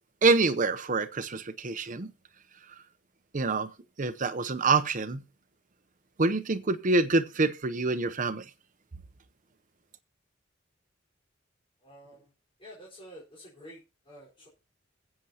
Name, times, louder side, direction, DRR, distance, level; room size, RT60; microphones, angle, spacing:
voice 1, 0.2-2.1 3.3-3.7 4.0-5.2 6.2-8.4, right 3 dB, 40° right, 0.7 m, -26 dB
voice 2, 11.8-12.3 12.6-14.5, equal, 25° left, 4.2 m, -49 dB
21.5 x 7.8 x 2.8 m
head